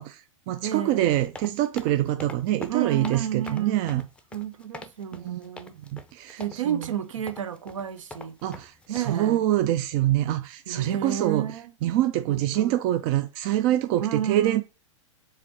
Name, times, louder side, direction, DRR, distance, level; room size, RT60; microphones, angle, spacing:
voice 1, 0.0-4.1 5.1-5.4 5.9-6.9 8.4-11.5 11.8-14.6, right 13 dB, 40° right, 0.4 m, -25 dB
voice 2, 0.6-1.2 2.7-3.8 4.3-5.8 6.4-8.3 8.9-9.4 10.7-11.7 12.3-12.8 14.0-14.6, right 10 dB, 75° right, 0.7 m, -30 dB
sound 1, 1.1-9.0, left 2 dB, 5° left, 0.5 m, -43 dB
4.9 x 3.5 x 2.9 m
hypercardioid pair, 105°, 17 cm